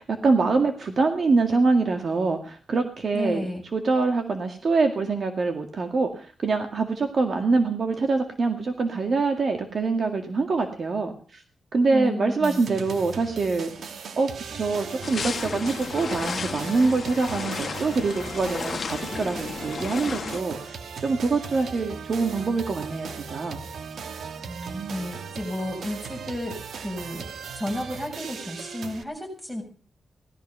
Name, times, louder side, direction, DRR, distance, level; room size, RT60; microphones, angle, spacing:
voice 1, 0.0-3.5 3.7-11.4 11.7-13.7 14.2-23.6 24.5-25.0, right 3 dB, 50° right, 5 dB, 2.0 m, -25 dB
voice 2, 3.1-3.6 11.9-12.6 24.9-27.2 27.5-29.6, left 1 dB, 10° right, 2 dB, 7.2 m, -32 dB
sound 1, 12.4-29.0, right 6 dB, 80° right, 1.3 m, -38 dB
sound 2, 15.0-20.4, left 5 dB, 50° left, 1.2 m, -33 dB
18.0 x 13.0 x 5.6 m, 0.42 s
cardioid pair, 100°, 0 cm